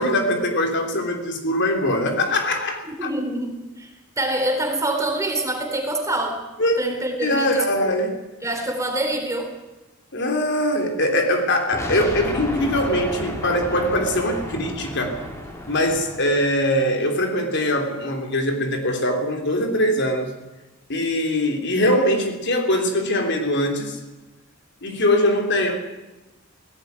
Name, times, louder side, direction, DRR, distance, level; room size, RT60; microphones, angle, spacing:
voice 1, 0.0-3.1 6.6-6.8 7.2-8.2 10.1-15.2 15.7-20.3 20.9-24.0 24.8-25.9, left 1 dB, 60° left, 4 dB, 3.4 m, -22 dB
voice 2, 3.0-3.9 4.2-6.4 6.8-7.5 7.8-7.9 8.4-9.5, right 1 dB, 15° right, 4 dB, 3.7 m, -25 dB
sound 1, 11.7-16.6, equal, 15° left, 4.0 m, -32 dB
17.5 x 17.0 x 9.5 m, 1.0 s
head